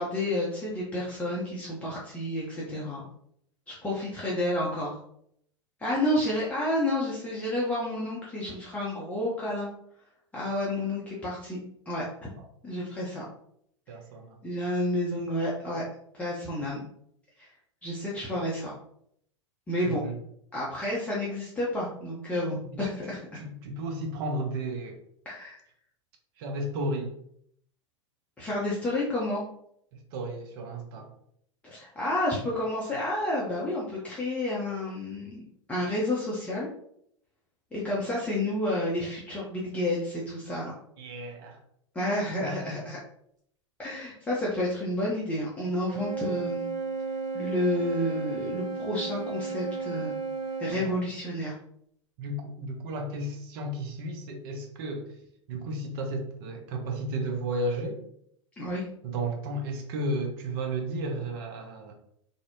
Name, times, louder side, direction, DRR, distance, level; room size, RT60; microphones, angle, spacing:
voice 1, 0.0-3.0 3.7-5.0 5.8-9.7 10.3-11.6 11.9-12.0 12.6-13.2 14.4-15.8 16.1-16.8 17.4-17.5 17.8-18.7 19.7-20.0 20.5-23.4 25.3-25.6 28.4-29.4 31.6-35.4 35.7-36.7 37.7-40.7 41.9-43.0 43.8-46.7 47.3-50.2 50.6-51.5 58.6-58.8, left 1 dB, 10° left, -7 dB, 0.6 m, -30 dB
voice 2, 13.9-14.4 19.8-20.2 22.7-22.9 23.3-25.0 26.4-27.1 30.1-31.1 41.0-41.6 42.4-42.8 50.7-51.0 52.2-55.1 55.5-58.0 59.0-61.9, right 1 dB, 50° right, 3 dB, 0.6 m, -33 dB
Wind instrument woodwind instrument, 45.9-50.8, right 4 dB, 25° right, 0.8 m, -33 dB
2.6 x 2.0 x 2.6 m, 0.70 s
figure-of-eight pair, 90°, 16 cm